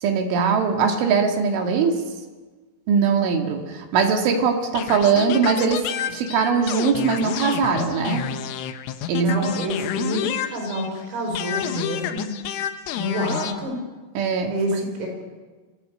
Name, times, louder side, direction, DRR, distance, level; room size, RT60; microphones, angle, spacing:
voice 1, 0.0-2.0 2.9-8.3 9.1-9.4 14.2-14.6, right 5 dB, 70° right, 3 dB, 4.4 m, -21 dB
sound 1, 4.8-11.0 11.4-13.6, left 10 dB, 80° left, 3.6 m, -29 dB
voice 2, 9.2-12.3 13.0-13.8 14.5-15.1, equal, 90° right, 3 dB, 7.6 m, -27 dB
26.0 x 20.0 x 7.9 m, 1.3 s
omnidirectional pair, 5.9 m